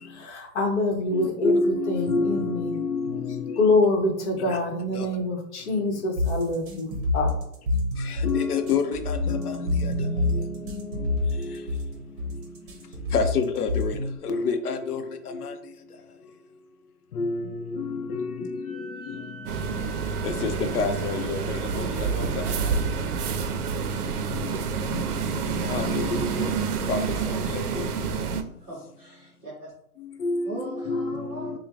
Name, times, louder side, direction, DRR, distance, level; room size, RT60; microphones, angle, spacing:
voice 1, 0.1-2.7 3.6-7.3, left 2 dB, 45° left, 1.0 m, -25 dB
voice 2, 1.1-3.6 4.5-4.6 4.9-5.1 8.0-11.7 13.1-15.6 17.1-19.3 20.2-22.7 23.9-24.0 24.3-25.1 25.4-26.5 26.9-27.0 27.3-27.9 30.2-31.6, left 4 dB, 75° left, 0.6 m, -29 dB
sound 1, 6.2-14.2, left 2 dB, 35° right, 0.8 m, -27 dB
Wind instrument woodwind instrument, 18.6-23.3, right 3 dB, 15° left, 0.8 m, -46 dB
sound 2, 19.5-28.4, right 5 dB, 75° right, 0.6 m, -28 dB
voice 3, 28.6-29.7 30.5-31.6, equal, 10° right, 0.4 m, -39 dB
5.6 x 2.2 x 2.4 m
hypercardioid pair, 145°, 46 cm